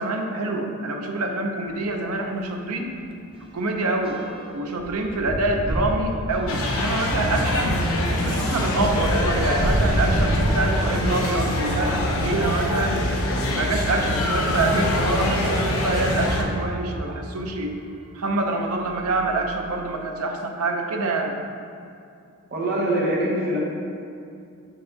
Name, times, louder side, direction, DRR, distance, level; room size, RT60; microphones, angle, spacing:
voice 1, 0.0-2.9 3.5-4.2 4.5-7.8 8.2-13.0 13.5-17.7 18.1-21.4 22.9-23.0, right 2 dB, 90° right, 3 dB, 0.6 m, -26 dB
sound 1, 1.7-1.9 2.2-2.4 2.7-12.1 12.9-14.2 14.9-15.0 15.2-15.3 17.0-17.1 17.8-18.1 18.4-19.7, right 1 dB, 25° right, 0.4 m, -30 dB
sound 2, 6.5-16.4, left 1 dB, 75° left, 0.7 m, -24 dB
voice 2, 22.5-23.6, right 1 dB, 45° right, -4 dB, 1.1 m, -23 dB
5.4 x 4.7 x 3.9 m, 2.5 s
head